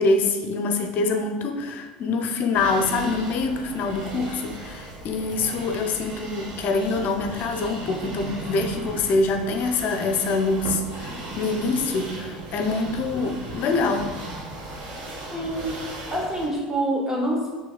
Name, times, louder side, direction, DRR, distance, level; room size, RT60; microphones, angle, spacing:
voice 1, 0.0-14.1, left 3 dB, 45° left, 5 dB, 0.5 m, -25 dB
sound 1, 2.5-16.5, right 1 dB, 50° right, 1.0 m, -37 dB
voice 2, 15.3-17.5, right 1 dB, 10° right, -2 dB, 1.1 m, -27 dB
6.0 x 3.0 x 2.3 m, 1.3 s
figure-of-eight pair, 70°, 4 cm